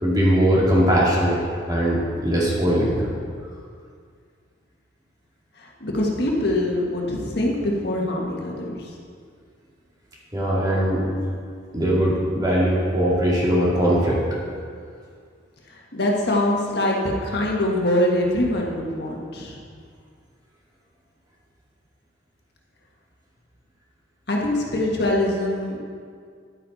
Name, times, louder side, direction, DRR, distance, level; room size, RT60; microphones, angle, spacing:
voice 1, 0.0-1.4 1.7-3.1 10.3-11.0 11.7-14.2, equal, 20° right, -6 dB, 2.2 m, -20 dB
voice 2, 5.6-8.9 15.9-19.6 24.3-25.8, left 1 dB, 55° left, -2 dB, 1.6 m, -23 dB
11.0 x 9.6 x 4.2 m, 2.1 s
head